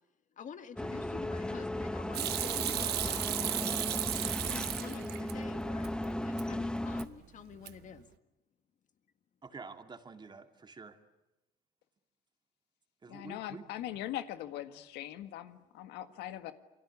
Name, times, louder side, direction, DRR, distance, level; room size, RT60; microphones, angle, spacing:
voice 1, 0.4-3.6 4.4-8.1, left 7 dB, 50° left, 9 dB, 1.9 m, -48 dB
sound 1, 0.8-7.1, left 1 dB, 5° left, 1.0 m, -36 dB
Hands / Sink (filling or washing), 2.1-5.3 5.7-6.5 6.8-7.3 7.5-8.0, right 14 dB, 70° right, 1.1 m, -35 dB
voice 2, 9.4-11.0 13.0-13.7, right 4 dB, 25° right, 7 dB, 2.4 m, -48 dB
voice 3, 13.1-16.5, left 12 dB, 90° left, 10 dB, 1.7 m, -41 dB
28.5 x 24.0 x 8.4 m, 1.0 s
cardioid pair, 110°, 17 cm